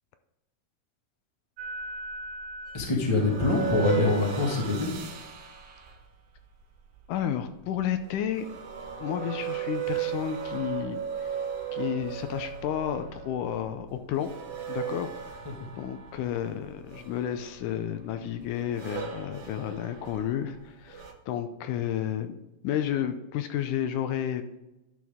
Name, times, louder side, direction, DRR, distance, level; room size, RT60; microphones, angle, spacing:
sound 1, 1.6-21.1, right 7 dB, 75° right, 1.3 m, -36 dB
voice 1, 2.7-4.9 15.4-15.7, left 3 dB, 50° left, -1 dB, 0.3 m, -25 dB
voice 2, 7.1-8.5 9.0-11.4 11.7-14.3 14.7-15.4 15.8-22.4 22.6-24.4, left 10 dB, 75° left, 8 dB, 2.0 m, -31 dB
11.0 x 6.1 x 3.5 m, 0.96 s
omnidirectional pair, 4.0 m